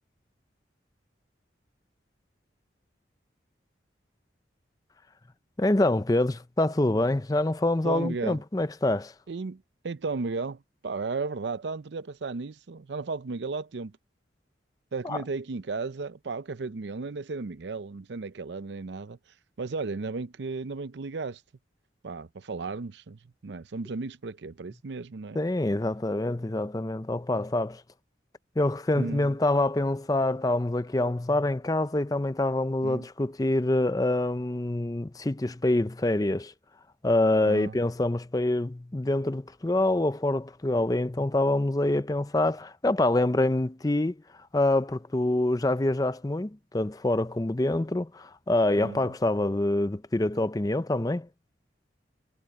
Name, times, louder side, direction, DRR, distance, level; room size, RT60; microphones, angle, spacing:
voice 1, 5.6-9.1 15.0-15.2 25.3-27.8 28.6-36.5 37.0-44.2 44.5-51.3, left 1 dB, 20° left, 0.5 m, -26 dB
voice 2, 7.8-8.4 9.3-13.9 14.9-19.2 19.6-21.4 22.0-25.4 28.9-29.3 32.8-33.1 37.4-37.8 48.8-49.0, right 4 dB, 70° right, 0.5 m, -34 dB
head